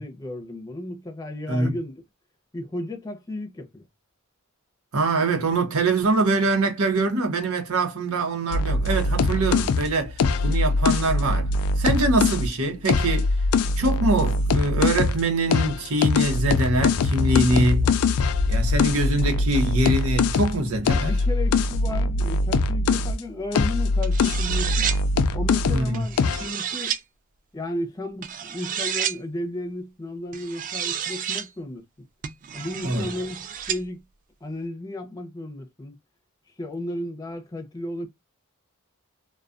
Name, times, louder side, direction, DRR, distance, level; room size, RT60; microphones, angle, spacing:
voice 1, 0.0-2.0 2.5-3.8 20.9-24.9 25.3-27.0 27.5-31.8 32.5-34.0 34.4-36.0 36.6-38.1, left 1 dB, 15° left, 0.6 m, -34 dB
voice 2, 4.9-11.5 11.8-13.3 13.8-17.9 18.5-21.1 25.7-26.1 32.8-33.1, right 2 dB, 70° right, 0.9 m, -24 dB
sound 1, 8.5-12.5 12.9-15.2 15.5-23.2 23.5-25.9 26.2-26.5, left 3 dB, 75° left, 0.3 m, -22 dB
sound 2, 24.0-25.0 25.9-27.0 28.2-29.2 30.3-31.5 32.2-33.8, right 8 dB, 35° right, 0.3 m, -30 dB
2.3 x 2.3 x 2.5 m
head